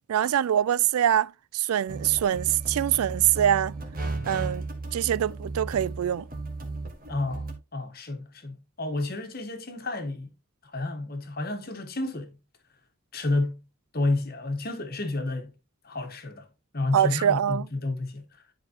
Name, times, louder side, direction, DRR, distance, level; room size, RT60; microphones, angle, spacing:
voice 1, 0.1-3.8 4.3-4.6 4.9-6.3 16.9-17.7, right 10 dB, 85° right, 0.3 m, -24 dB
sound 1, 1.9-7.5, right 3 dB, 40° right, 1.6 m, -35 dB
voice 2, 7.1-7.5 7.7-10.3 10.6-12.4 13.1-13.6 13.9-15.5 15.8-16.5 16.7-18.3, left 2 dB, 45° left, 1.4 m, -30 dB
10.5 x 5.0 x 2.9 m
head